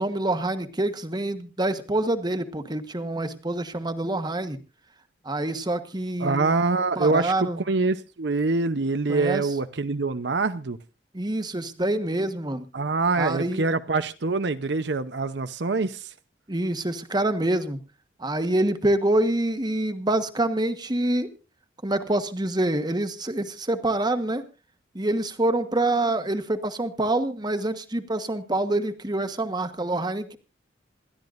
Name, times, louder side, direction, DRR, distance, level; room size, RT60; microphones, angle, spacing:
voice 1, 0.0-4.6 5.2-6.5 7.0-7.6 9.1-9.5 11.1-12.7 13.2-13.7 16.5-17.8 18.2-21.3 21.8-24.4 24.9-30.4, right 1 dB, 25° right, 1.3 m, -26 dB
voice 2, 6.2-10.8 12.7-16.1, right 3 dB, 70° right, 0.8 m, -25 dB
27.5 x 12.5 x 2.6 m
head